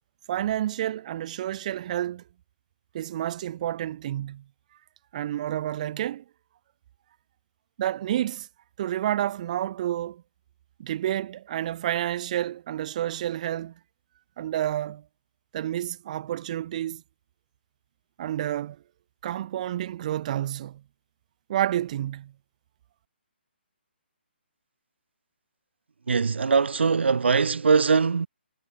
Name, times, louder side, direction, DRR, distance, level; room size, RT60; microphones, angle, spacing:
voice 1, 0.3-2.2 2.9-4.4 5.1-6.2 7.8-8.5 8.8-10.2 10.8-13.7 14.4-15.0 15.5-17.0 18.2-18.8 19.2-20.8 21.5-22.3, right 12 dB, 40° right, 4.8 m, -29 dB
voice 2, 26.1-28.3, right 5 dB, 75° right, 3.5 m, -21 dB
hypercardioid pair, 150°, 6 cm